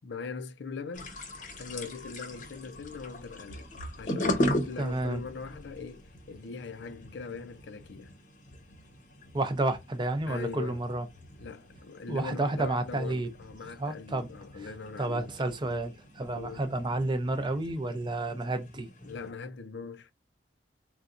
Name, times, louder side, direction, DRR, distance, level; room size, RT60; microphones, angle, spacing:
voice 1, 0.0-1.2 1.6-3.7 4.0-8.1 10.3-10.8 11.4-15.3 16.4-16.7 19.0-20.1, left 4 dB, 70° left, 0.5 m, -41 dB
sound 1, 0.9-19.3, left 1 dB, 45° left, 0.8 m, -39 dB
voice 2, 4.8-5.2 9.3-11.1 12.1-13.3 13.8-14.3 15.0-18.9, right 2 dB, 25° right, 0.5 m, -30 dB
3.9 x 2.3 x 2.5 m
head